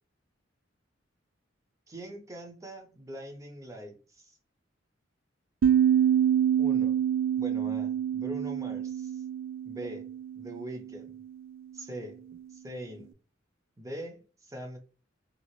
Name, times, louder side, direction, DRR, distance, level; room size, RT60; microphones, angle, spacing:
voice 1, 1.9-4.4 6.6-7.0 7.4-9.2 9.6-10.1 10.4-11.1 11.7-12.2 12.5-13.1 13.8-14.8, right 1 dB, 15° right, 0.6 m, -42 dB
sound 1, 5.6-10.8, right 9 dB, 80° right, 0.3 m, -26 dB
2.7 x 2.4 x 3.0 m
head